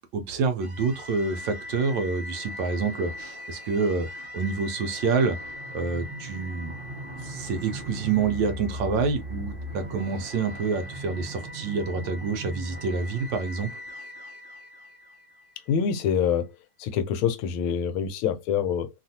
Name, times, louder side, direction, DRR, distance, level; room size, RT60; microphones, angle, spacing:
voice 1, 0.1-4.1 4.3-5.4 5.7-6.7 7.2-13.7, right 4 dB, 70° right, 1.2 m, -27 dB
sound 1, 0.6-15.7, left 1 dB, 55° right, 0.6 m, -39 dB
voice 2, 15.7-16.5 16.8-18.9, left 7 dB, 85° left, 1.4 m, -25 dB
3.4 x 2.4 x 2.6 m
omnidirectional pair, 2.2 m